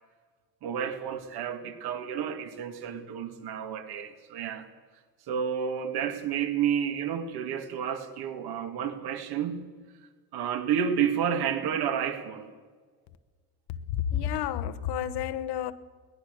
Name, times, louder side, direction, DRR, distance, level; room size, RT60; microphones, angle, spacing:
voice 1, 0.6-4.7 5.3-9.7 10.3-12.5, right 8 dB, 65° right, 2.6 m, -30 dB
voice 2, 13.7-15.7, left 10 dB, 75° left, 1.2 m, -30 dB
21.5 x 19.5 x 6.8 m
cardioid pair, 160°, 41 cm